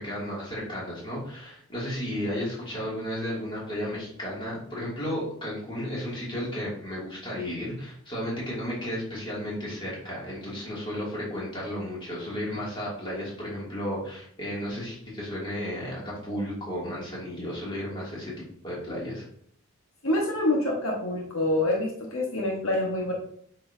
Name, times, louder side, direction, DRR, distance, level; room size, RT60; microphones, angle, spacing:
voice 1, 0.0-18.3 18.6-19.2, equal, 20° left, -6 dB, 2.7 m, -33 dB
voice 2, 20.0-23.1, left 1 dB, 70° left, -2 dB, 1.5 m, -26 dB
8.4 x 5.5 x 2.8 m, 0.63 s
head